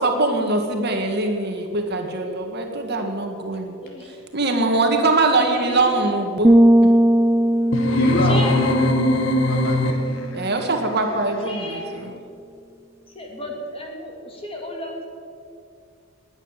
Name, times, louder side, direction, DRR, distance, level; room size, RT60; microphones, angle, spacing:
voice 1, 0.0-3.8 4.3-6.6 10.3-12.1, right 2 dB, 50° right, 4 dB, 1.9 m, -22 dB
voice 2, 3.8-4.2 5.4-5.8 8.2-8.5 9.1-9.4 11.4-12.1 13.1-15.1, left 1 dB, 25° left, 1 dB, 2.7 m, -33 dB
sound 1, 6.4-10.2, right 1 dB, 10° right, 0.3 m, -18 dB
sound 2, 7.7-10.4, left 1 dB, 65° left, 1.4 m, -20 dB
voice 3, 7.8-10.3, left 1 dB, 45° left, -1 dB, 3.4 m, -28 dB
20.0 x 9.6 x 7.4 m, 2.5 s
head